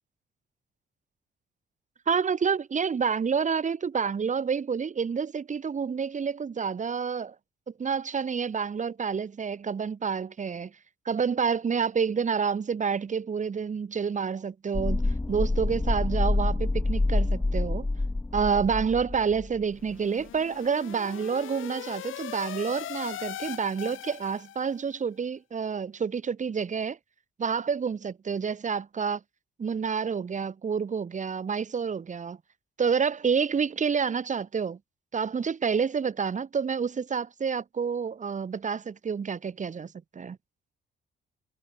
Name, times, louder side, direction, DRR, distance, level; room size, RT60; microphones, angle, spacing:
voice 1, 2.1-7.3 7.8-10.7 11.0-17.9 18.3-27.0 27.4-29.2 29.6-32.4 32.8-34.8 35.1-40.4, right 6 dB, 35° right, 1.7 m, -28 dB
sound 1, 14.7-19.6 19.9-20.0, left 2 dB, 10° left, 1.1 m, -27 dB
sound 2, 19.8-24.8, left 12 dB, 80° left, 1.7 m, -40 dB
cardioid pair, 115°, 20 cm